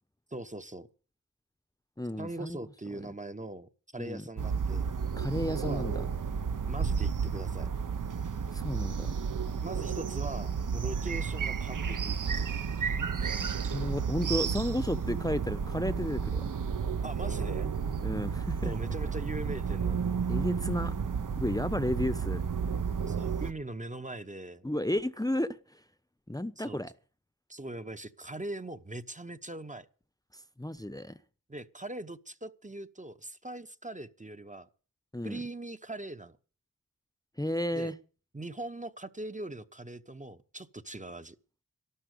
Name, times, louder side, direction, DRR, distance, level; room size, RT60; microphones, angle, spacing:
voice 1, 0.3-0.9 2.2-4.9 5.6-5.9 6.7-7.7 9.6-12.1 17.0-17.7 18.6-20.2 23.1-24.6 26.6-26.8 27.5-29.9 31.5-34.7 35.2-36.4 37.7-37.9 38.3-41.4, right 2 dB, 20° right, 1.0 m, -41 dB
voice 2, 2.0-2.6 4.0-4.2 5.2-5.9 8.5-9.1 13.7-16.4 18.0-18.7 20.3-20.9 21.4-22.4 24.6-25.8 26.3-26.9 30.3-31.2 35.1-35.4 37.4-37.9, left 1 dB, 10° left, 0.9 m, -32 dB
sound 1, 4.4-23.5, right 6 dB, 60° right, 0.9 m, -32 dB
12.5 x 12.5 x 6.6 m
wide cardioid pair, 60°, 35 cm